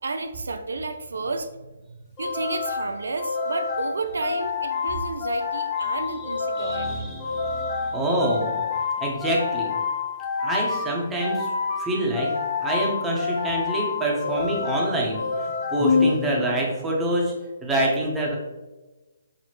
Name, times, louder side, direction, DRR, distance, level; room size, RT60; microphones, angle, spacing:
voice 1, 0.0-7.1, right 3 dB, 80° right, 8 dB, 0.3 m, -32 dB
sound 1, 2.2-16.7, left 5 dB, 20° left, 0.6 m, -28 dB
voice 2, 6.6-8.5 9.0-9.8 10.4-11.5 11.8-12.3 12.6-17.3 17.6-18.4, right 1 dB, 10° right, -3 dB, 0.8 m, -26 dB
5.8 x 2.1 x 3.0 m, 1.1 s
hypercardioid pair, 150°, 0 cm